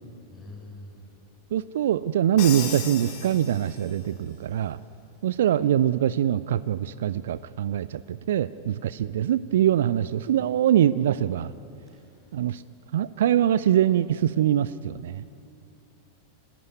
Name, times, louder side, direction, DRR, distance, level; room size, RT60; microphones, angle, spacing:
voice 1, 0.3-1.0 11.9-12.1, left 2 dB, 15° left, -1 dB, 6.6 m, -44 dB
voice 2, 1.5-4.8 5.2-11.5 12.3-12.6 12.9-15.2, right 11 dB, 60° right, 18 dB, 0.4 m, -23 dB
Crash cymbal, 2.4-4.1, left 8 dB, 45° left, 3.3 m, -36 dB
29.5 x 12.0 x 9.5 m, 2.7 s
figure-of-eight pair, 90°, 0 cm